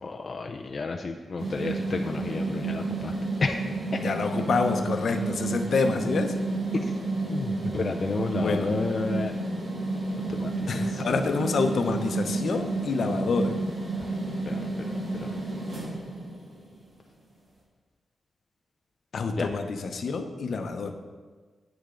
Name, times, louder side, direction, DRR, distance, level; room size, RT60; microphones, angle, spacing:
voice 1, 0.0-3.1 3.4-3.6 6.7-6.8 7.3-9.3 10.4-10.5 14.5-14.6 15.2-15.3 19.4-19.5, left 4 dB, 35° left, 3 dB, 0.4 m, -30 dB
sound 1, 1.4-16.7, right 3 dB, 55° right, 2.6 m, -31 dB
voice 2, 4.0-6.3 8.3-8.7 10.7-13.6 19.1-20.9, left 4 dB, 60° left, 6 dB, 0.8 m, -27 dB
10.0 x 8.8 x 3.8 m, 1.4 s
wide cardioid pair, 160°, 0 cm